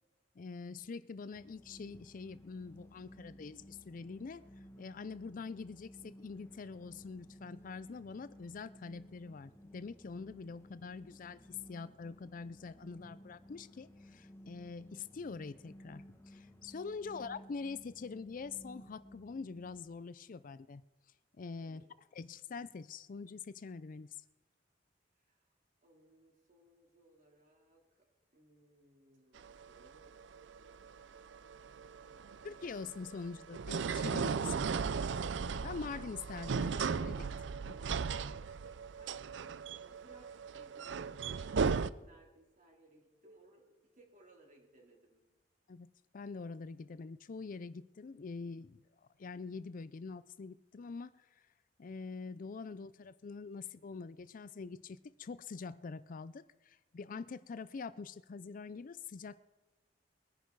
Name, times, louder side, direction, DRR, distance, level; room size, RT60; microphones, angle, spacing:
voice 1, 0.4-4.4 4.8-20.8 21.4-21.8 22.1-24.2 32.4-34.7 35.6-37.3 37.7-37.8 45.7-51.4 51.8-59.4, left 4 dB, 50° left, 0.4 m, -45 dB
sound 1, 1.3-19.8, equal, 15° left, 1.1 m, -56 dB
voice 2, 21.5-21.9 25.2-25.5 25.8-28.0 28.3-30.8 32.0-32.8 37.2-45.2, right 2 dB, 45° right, 3.5 m, -64 dB
sound 2, 29.4-41.9, right 5 dB, 75° right, 0.5 m, -36 dB
21.5 x 10.5 x 4.7 m
head